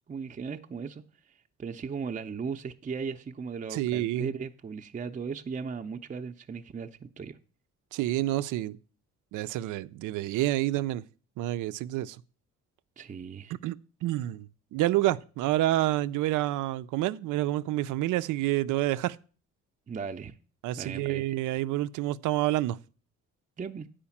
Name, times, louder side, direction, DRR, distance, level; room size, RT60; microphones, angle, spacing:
voice 1, 0.1-1.0 1.6-7.4 13.0-13.5 19.9-20.4 20.8-21.2 23.6-23.9, right 5 dB, 25° right, 0.6 m, -37 dB
voice 2, 3.7-4.3 7.9-8.8 9.3-11.0 11.4-12.2 13.6-19.2 20.6-22.8, right 15 dB, 90° right, 0.5 m, -28 dB
8.7 x 5.0 x 7.1 m
cardioid pair, 90°, 30 cm